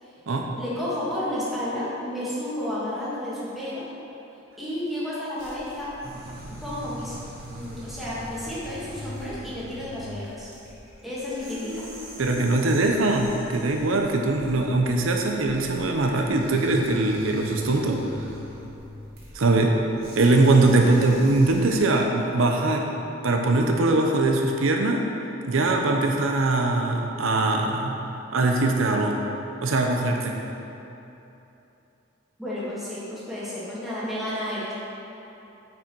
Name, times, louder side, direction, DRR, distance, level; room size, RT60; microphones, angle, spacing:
voice 1, 0.6-3.9 4.6-5.9 6.6-7.2 7.5-10.5 11.0-11.9 32.4-34.7, left 1 dB, ahead, -10 dB, 1.8 m, -31 dB
sound 1, 5.4-21.8, right 1 dB, 50° right, 1.7 m, -40 dB
voice 2, 12.2-18.0 19.3-19.7 20.2-22.9 23.2-25.0 25.5-28.0 28.3-29.2 29.6-30.3, right 2 dB, 80° right, 2 dB, 0.6 m, -21 dB
8.9 x 5.2 x 4.5 m, 2.9 s
head